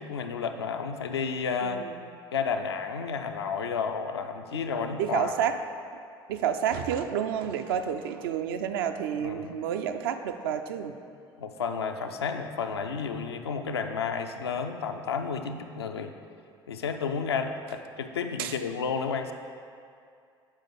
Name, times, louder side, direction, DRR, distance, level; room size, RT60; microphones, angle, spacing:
voice 1, 0.0-1.8 2.3-5.3 9.2-9.6 11.4-16.1 16.7-19.3, left 6 dB, 80° left, 6 dB, 0.4 m, -31 dB
voice 2, 1.6-1.9 4.5-5.6 6.3-10.9 18.4-18.5, right 8 dB, 65° right, 7 dB, 0.4 m, -30 dB
7.4 x 5.0 x 3.7 m, 2.4 s
figure-of-eight pair, 60°, 13 cm